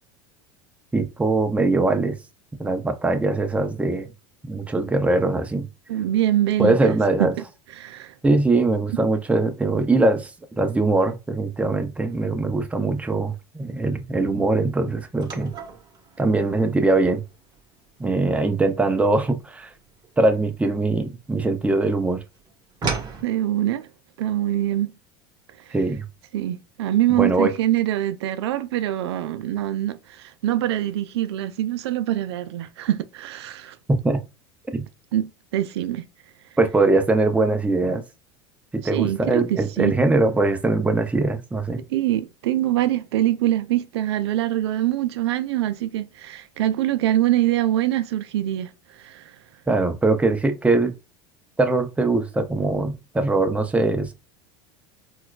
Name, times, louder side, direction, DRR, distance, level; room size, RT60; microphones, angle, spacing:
voice 1, 0.9-2.2 2.6-4.1 4.4-5.7 6.6-7.3 8.2-15.5 16.2-17.2 18.0-19.7 20.2-22.2 25.7-26.0 27.1-27.5 33.9-34.2 34.7-34.9 36.6-38.0 38.7-41.8 49.7-50.9 51.6-54.1, right 2 dB, 10° right, 0.6 m, -21 dB
voice 2, 5.9-7.3 7.8-8.1 8.9-9.1 23.2-23.9 24.2-24.9 25.7-25.8 26.3-33.8 35.1-36.1 38.8-39.9 41.9-49.3, right 13 dB, 85° right, 0.4 m, -24 dB
sound 1, 15.2-21.7 22.0-23.2, right 4 dB, 30° right, 1.2 m, -35 dB
4.3 x 2.3 x 2.2 m
hypercardioid pair, 95°, 14 cm